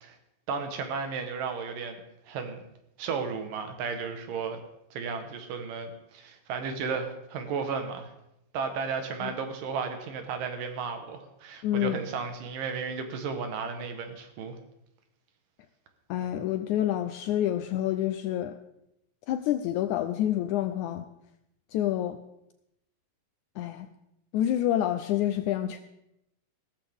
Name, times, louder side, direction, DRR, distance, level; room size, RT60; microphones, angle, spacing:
voice 1, 0.5-2.0 2.3-2.6 3.0-4.6 4.9-8.1 8.5-14.6, right 5 dB, 75° right, 6 dB, 2.9 m, -34 dB
voice 2, 11.6-12.0 16.1-18.5 19.3-21.0 21.7-22.2 23.6-23.9 24.3-25.8, left 12 dB, 80° left, 8 dB, 1.8 m, -28 dB
15.5 x 14.0 x 3.6 m, 0.83 s
omnidirectional pair, 4.0 m